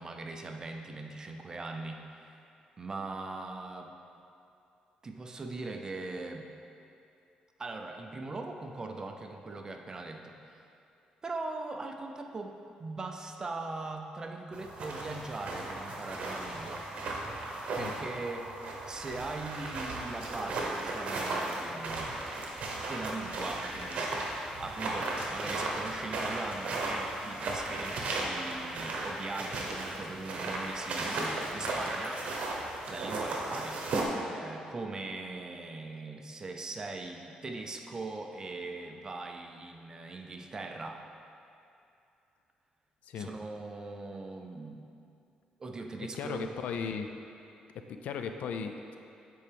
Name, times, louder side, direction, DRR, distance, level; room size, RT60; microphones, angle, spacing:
voice 1, 0.0-2.4 2.8-3.9 5.0-6.5 7.6-10.6 11.2-16.8 17.7-18.6 18.9-22.3 22.7-24.2 24.6-32.4 32.9-33.8 34.4-41.0 43.2-44.8 45.6-46.5, right 3 dB, 30° right, 3 dB, 0.5 m, -40 dB
sound 1, 14.5-34.0, right 2 dB, 60° right, 1.0 m, -36 dB
sound 2, 29.5-30.2 31.1-32.1, left 2 dB, 45° left, 0.8 m, -47 dB
voice 2, 46.1-47.1 47.7-49.0, left 6 dB, 75° left, 6 dB, 0.4 m, -36 dB
8.4 x 4.5 x 3.4 m, 2.6 s
cardioid pair, 120°, 2 cm